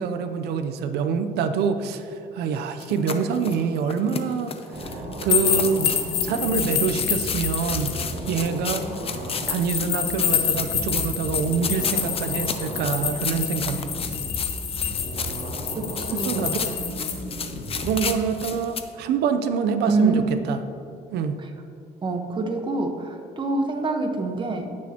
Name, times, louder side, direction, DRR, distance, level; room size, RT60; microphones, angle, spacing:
voice 1, 0.0-8.0 8.3-9.2 9.5-13.9 16.1-16.8 17.8-20.6 21.1-21.4, right 6 dB, 75° right, 8 dB, 0.6 m, -26 dB
sound 1, 2.8-18.8, left 6 dB, 35° left, 0.6 m, -34 dB
sound 2, 4.7-18.0, right 1 dB, 45° right, 2.1 m, -35 dB
sound 3, 5.3-8.0 9.4-17.1, left 9 dB, 75° left, 1.3 m, -27 dB
voice 2, 15.7-16.5 19.9-20.4 22.0-24.7, right 3 dB, 30° right, 5 dB, 1.1 m, -25 dB
16.5 x 6.3 x 2.9 m, 2.5 s
cardioid pair, 110°, 17 cm